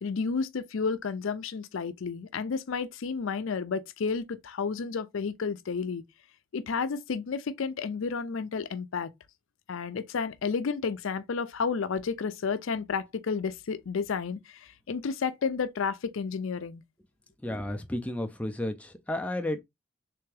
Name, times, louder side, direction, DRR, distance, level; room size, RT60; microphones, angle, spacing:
voice 1, 0.0-6.0 6.5-9.1 9.7-16.8, left 5 dB, 70° left, 0.5 m, -31 dB
voice 2, 17.4-19.6, left 1 dB, 5° left, 0.4 m, -32 dB
3.4 x 3.4 x 3.3 m
head